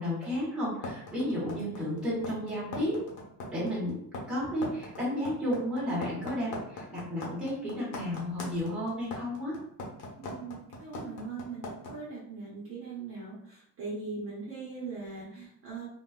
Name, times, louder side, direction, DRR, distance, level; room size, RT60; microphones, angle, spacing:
voice 1, 0.0-3.0 3.5-4.0 4.3-9.6, left 1 dB, 5° right, -9 dB, 1.1 m, -32 dB
sound 1, 0.8-11.9, left 2 dB, 80° left, 1.1 m, -39 dB
voice 2, 10.2-15.8, right 4 dB, 35° right, -6 dB, 0.9 m, -40 dB
3.9 x 2.3 x 2.3 m, 0.70 s
cardioid pair, 180°, 38 cm